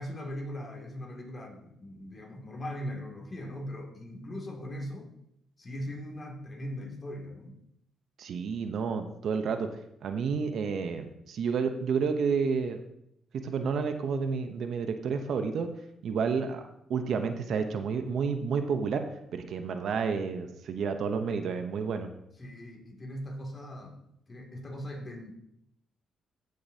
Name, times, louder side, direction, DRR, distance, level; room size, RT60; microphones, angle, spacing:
voice 1, 0.0-5.1 5.6-7.6 22.4-24.0 24.3-25.4, equal, 30° left, 0 dB, 2.5 m, -40 dB
voice 2, 8.2-9.7 10.0-12.8 13.4-15.7 16.0-16.6 16.9-19.1 19.3-22.1, right 5 dB, 65° right, 7 dB, 0.8 m, -30 dB
15.5 x 6.5 x 2.8 m, 0.77 s
cardioid pair, 90°, 0 cm